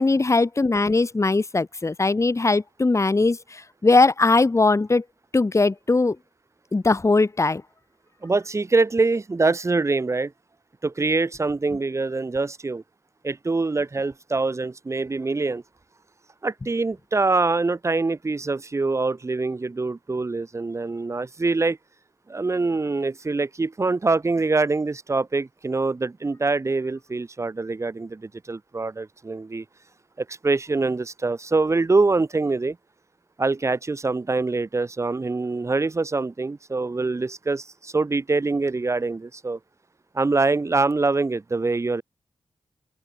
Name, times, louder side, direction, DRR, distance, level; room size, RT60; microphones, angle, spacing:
voice 1, 0.0-5.0 5.3-6.2 6.7-7.6, left 3 dB, 30° left, 0.9 m, -20 dB
voice 2, 8.2-10.3 10.8-12.8 13.2-15.6 16.4-21.8 22.3-29.6 30.2-32.8 33.4-39.6 40.1-42.0, right 3 dB, 30° right, 0.5 m, -24 dB
open air
cardioid pair, 55°, 10 cm